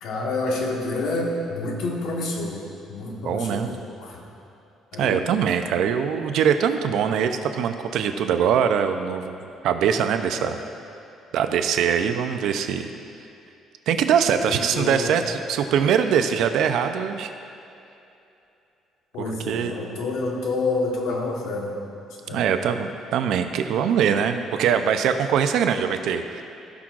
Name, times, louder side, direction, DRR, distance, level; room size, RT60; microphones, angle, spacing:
voice 1, 0.0-4.2 4.9-5.2 10.3-10.5 14.4-15.1 19.1-21.8 22.3-22.5, left 2 dB, 75° left, -1 dB, 1.3 m, -28 dB
voice 2, 3.2-3.7 5.0-10.6 11.3-12.9 13.9-17.3 19.2-19.7 22.3-26.4, right 8 dB, 70° right, 8 dB, 0.5 m, -22 dB
16.5 x 6.1 x 2.5 m, 2.7 s
cardioid pair, 150°, 0 cm